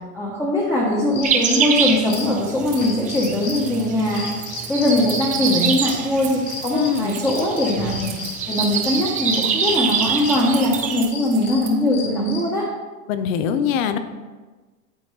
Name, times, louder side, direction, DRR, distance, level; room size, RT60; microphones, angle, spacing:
voice 1, 0.1-4.3 4.7-8.1 8.5-12.7, left 1 dB, 5° left, -6 dB, 1.1 m, -21 dB
sound 1, 0.9-12.6, left 4 dB, 45° left, 2.5 m, -33 dB
sound 2, 1.2-11.1, right 7 dB, 20° right, 0.6 m, -26 dB
Keys jangling, 2.1-11.9, right 9 dB, 90° right, 1.9 m, -40 dB
voice 2, 6.7-7.1 13.1-14.0, left 8 dB, 65° left, 10 dB, 0.8 m, -22 dB
11.0 x 4.3 x 3.3 m, 1.3 s
supercardioid pair, 135°, 43 cm